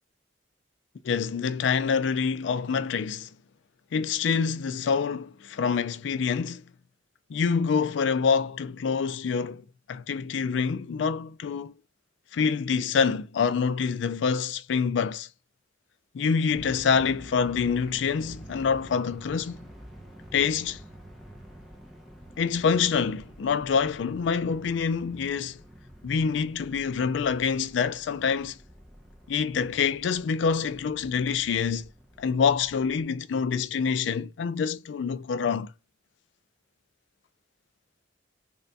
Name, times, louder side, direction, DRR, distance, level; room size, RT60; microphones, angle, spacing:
voice 1, 1.0-3.3 3.9-6.6 7.3-9.6 9.9-11.7 12.3-15.3 16.1-19.6 20.3-20.8 22.4-25.6 26.0-28.6 29.3-31.9 32.2-35.7, left 6 dB, 85° left, 0.4 m, -26 dB
sound 1, 16.5-33.0, equal, ahead, 0.7 m, -48 dB
3.3 x 2.2 x 3.9 m
head